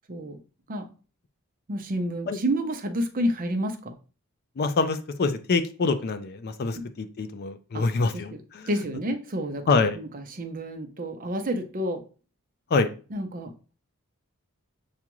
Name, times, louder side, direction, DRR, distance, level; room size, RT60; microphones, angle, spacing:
voice 1, 1.7-3.9 7.7-7.8 8.1-8.4 8.7-12.0 13.1-13.5, equal, 40° right, 6 dB, 0.6 m, -29 dB
voice 2, 4.6-8.7 9.7-10.0 12.7-12.9, left 4 dB, 45° left, 10 dB, 0.4 m, -25 dB
6.9 x 2.4 x 3.0 m, 0.35 s
head